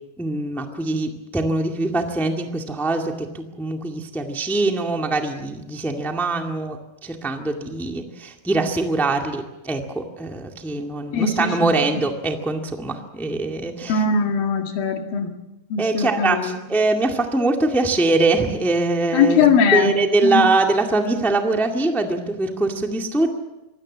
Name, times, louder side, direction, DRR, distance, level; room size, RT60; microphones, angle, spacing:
voice 1, 0.2-6.8 7.0-14.0 15.8-19.4 19.7-23.3, right 3 dB, ahead, 3 dB, 1.0 m, -23 dB
voice 2, 11.1-11.6 13.9-15.3 15.7-16.6 19.1-19.9 20.2-20.5, left 6 dB, 85° left, 4 dB, 3.8 m, -20 dB
24.5 x 17.5 x 7.4 m, 1.0 s
omnidirectional pair, 4.0 m